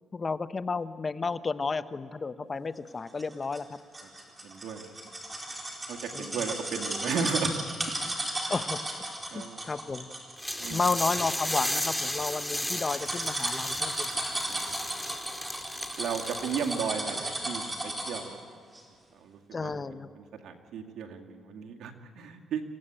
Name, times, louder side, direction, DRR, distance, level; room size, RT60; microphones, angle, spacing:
voice 1, 0.1-3.8 6.1-6.5 8.5-10.1 10.7-14.1 19.5-20.1, left 4 dB, 30° left, 13 dB, 0.9 m, -32 dB
sound 1, 3.2-18.4 18.7-18.8, right 1 dB, 20° right, 4.4 m, -35 dB
voice 2, 4.4-4.8 5.9-7.5 8.4-8.5 9.3-9.7 10.6-10.8 14.5-14.8 16.0-18.4 19.1-22.6, right 6 dB, 75° right, 3 dB, 2.2 m, -35 dB
sound 2, 10.4-16.9, left 1 dB, 5° left, 2.2 m, -34 dB
27.0 x 15.0 x 8.9 m, 2.1 s
cardioid pair, 90°, 0 cm